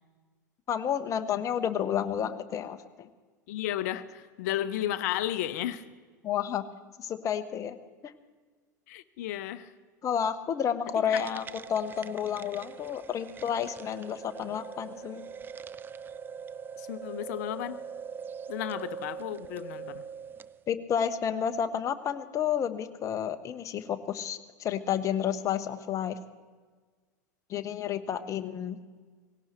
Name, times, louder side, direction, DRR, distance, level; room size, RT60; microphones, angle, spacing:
voice 1, 0.7-3.1 6.2-6.6 7.0-7.8 8.0-8.1 10.0-15.2 20.7-26.2 27.5-28.8, left 8 dB, 30° left, 10 dB, 1.0 m, -31 dB
voice 2, 3.5-5.8 8.9-9.7 10.9-11.2 16.8-17.8 18.5-20.1, left 13 dB, 55° left, 13 dB, 0.8 m, -33 dB
sound 1, 11.1-20.6, right 6 dB, 20° right, 0.5 m, -42 dB
18.0 x 17.5 x 4.5 m, 1.5 s
figure-of-eight pair, 85°, 10 cm